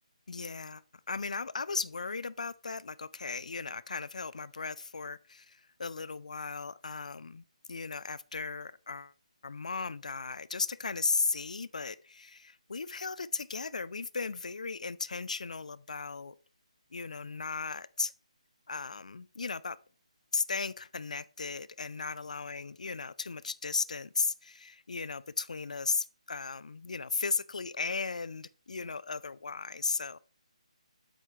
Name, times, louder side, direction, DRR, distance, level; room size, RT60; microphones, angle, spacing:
voice 1, 0.3-9.1 9.4-16.3 16.9-18.1 18.7-19.8 20.3-30.2, left 4 dB, 75° left, 0.4 m, -36 dB
8.4 x 5.5 x 3.1 m
figure-of-eight pair, 160°, 4 cm